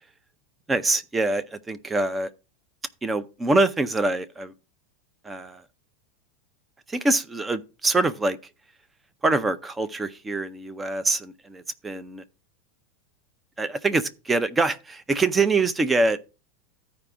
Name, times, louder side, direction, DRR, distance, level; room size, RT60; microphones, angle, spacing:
voice 1, 0.7-2.3 3.0-4.5 5.2-5.6 6.9-8.4 9.2-12.2 13.6-16.2, right 3 dB, 10° right, 0.5 m, -24 dB
14.0 x 5.0 x 3.5 m
supercardioid pair, 165°, 0 cm